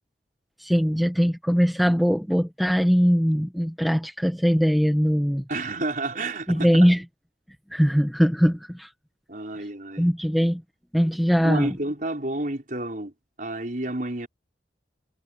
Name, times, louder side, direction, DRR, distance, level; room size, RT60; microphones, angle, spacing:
voice 1, 0.6-5.4 6.5-7.0 7.7-8.9 10.0-10.6 10.9-11.7, equal, ahead, 1.6 m, -21 dB
voice 2, 5.5-6.9 9.3-10.1 11.4-13.1 13.4-14.3, right 2 dB, 45° right, 5.3 m, -30 dB
head